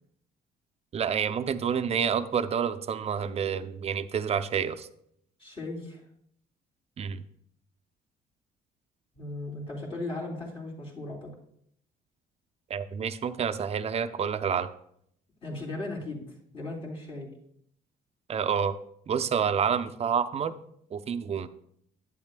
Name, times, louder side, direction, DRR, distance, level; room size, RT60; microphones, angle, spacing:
voice 1, 0.9-4.9 7.0-7.2 12.7-14.7 18.3-18.8 19.1-20.5 20.9-21.5, right 7 dB, 40° right, 11 dB, 0.5 m, -28 dB
voice 2, 5.4-6.0 9.1-11.3 15.4-17.3, left 2 dB, 35° left, -2 dB, 2.9 m, -37 dB
10.5 x 9.0 x 2.2 m, 0.70 s
cardioid pair, 95°, 16 cm